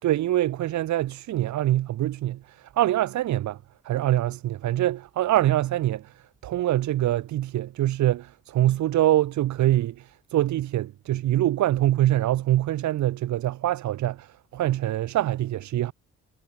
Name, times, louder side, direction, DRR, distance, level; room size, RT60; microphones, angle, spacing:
voice 1, 0.0-3.6 3.8-6.1 6.4-15.9, right 13 dB, 70° right, 2.3 m, -24 dB
supercardioid pair, 70°, 30 cm